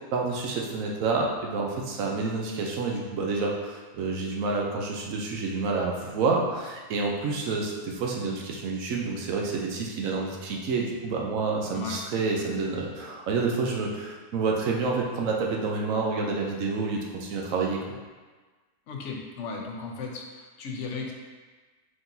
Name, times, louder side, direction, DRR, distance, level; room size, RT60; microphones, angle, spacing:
voice 1, 0.1-17.8, right 4 dB, 80° right, -1 dB, 1.1 m, -28 dB
voice 2, 18.9-21.1, left 4 dB, 65° left, 0 dB, 1.0 m, -35 dB
4.9 x 3.8 x 2.7 m, 1.3 s
omnidirectional pair, 1.4 m